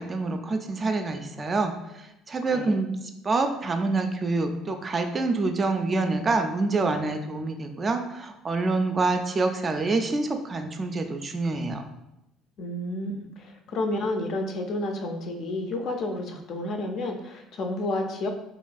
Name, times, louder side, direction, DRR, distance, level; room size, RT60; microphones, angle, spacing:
voice 1, 0.0-2.9 3.2-11.8, right 3 dB, 35° right, 6 dB, 0.3 m, -26 dB
voice 2, 2.4-2.8 12.6-18.3, left 2 dB, 60° left, 3 dB, 0.4 m, -31 dB
2.9 x 2.2 x 2.4 m, 0.87 s
hypercardioid pair, 65°, 0 cm